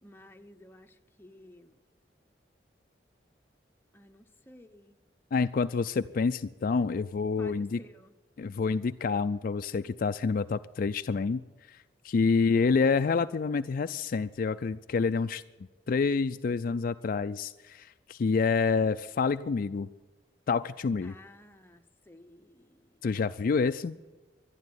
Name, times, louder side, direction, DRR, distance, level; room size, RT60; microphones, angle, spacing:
voice 1, 0.0-1.8 3.9-5.0 7.4-8.1 12.2-12.6 21.0-23.0, left 1 dB, 10° left, 4 dB, 0.8 m, -54 dB
voice 2, 5.3-7.8 8.4-11.4 11.7-11.8 12.0-15.4 15.9-19.9 20.5-21.1 23.0-24.0, left 4 dB, 50° left, 10 dB, 0.4 m, -28 dB
12.0 x 11.5 x 9.3 m, 1.2 s
head